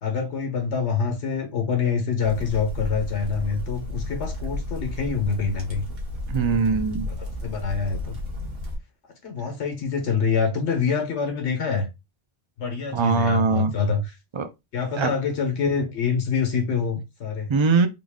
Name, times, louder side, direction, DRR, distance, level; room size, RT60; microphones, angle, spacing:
voice 1, 0.0-5.8 7.4-8.2 9.2-11.9 12.6-14.1 14.7-17.5, left 5 dB, 85° left, 1.3 m, -25 dB
sound 1, 2.2-8.8, left 2 dB, 60° right, 1.4 m, -32 dB
voice 2, 6.3-7.1 12.9-13.7 14.3-14.5 15.0-15.1 17.5-17.9, right 5 dB, 45° right, 0.4 m, -21 dB
3.9 x 2.4 x 3.5 m
omnidirectional pair, 1.1 m